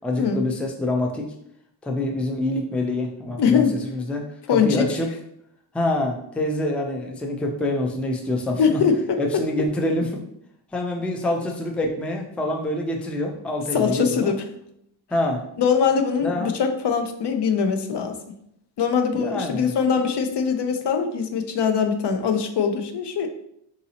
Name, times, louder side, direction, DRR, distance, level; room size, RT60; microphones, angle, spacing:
voice 1, 0.0-1.3 1.8-4.2 4.5-5.1 5.7-8.8 9.2-10.2 10.7-14.3 15.1-15.4 16.2-16.5 19.1-19.7, left 1 dB, 5° left, 1 dB, 0.4 m, -26 dB
voice 2, 3.4-3.7 4.5-4.8 8.6-9.4 13.7-14.4 15.6-18.2 18.8-23.3, left 6 dB, 65° left, 6 dB, 0.5 m, -22 dB
3.8 x 2.7 x 2.8 m, 0.73 s
wide cardioid pair, 95°, 45 cm